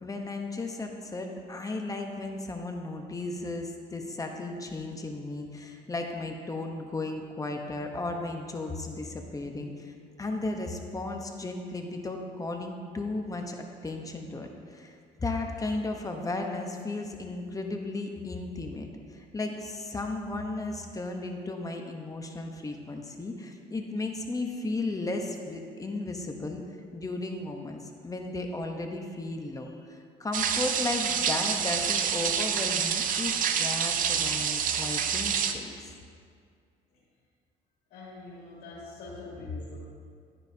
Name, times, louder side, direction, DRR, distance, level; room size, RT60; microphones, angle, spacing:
voice 1, 0.0-26.6 26.9-35.7, left 2 dB, 20° left, 3 dB, 0.9 m, -35 dB
sound 1, 30.3-35.5, right 7 dB, 55° right, 0.7 m, -27 dB
voice 2, 37.9-39.8, left 3 dB, 85° left, -8 dB, 2.5 m, -42 dB
12.5 x 9.7 x 2.8 m, 2.2 s
cardioid pair, 110°, 17 cm